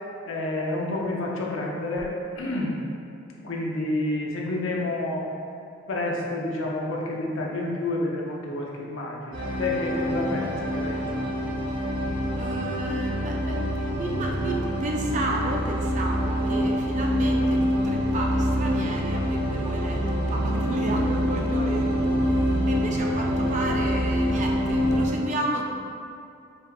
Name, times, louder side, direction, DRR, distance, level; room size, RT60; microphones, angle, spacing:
voice 1, 0.3-2.8 3.4-5.3 5.9-11.2, left 2 dB, 80° left, -2 dB, 0.6 m, -29 dB
sound 1, 9.3-25.1, equal, 60° right, 0.8 m, -25 dB
voice 2, 12.3-25.6, right 2 dB, 35° right, 0 dB, 0.4 m, -33 dB
5.1 x 3.3 x 2.3 m, 2.5 s
head